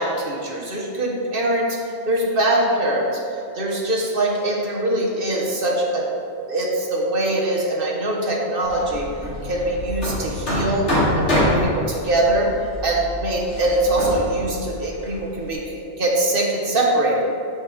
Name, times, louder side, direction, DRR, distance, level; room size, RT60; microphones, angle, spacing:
voice 1, 0.0-1.7 2.1-3.1 3.5-6.0 6.5-9.1 9.4-10.9 11.1-12.5 12.8-17.3, right 1 dB, 50° right, -2 dB, 1.3 m, -22 dB
Hammer, 8.6-15.5, left 1 dB, 75° left, 2.5 m, -26 dB
8.2 x 7.4 x 3.5 m, 2.6 s
omnidirectional pair, 1.2 m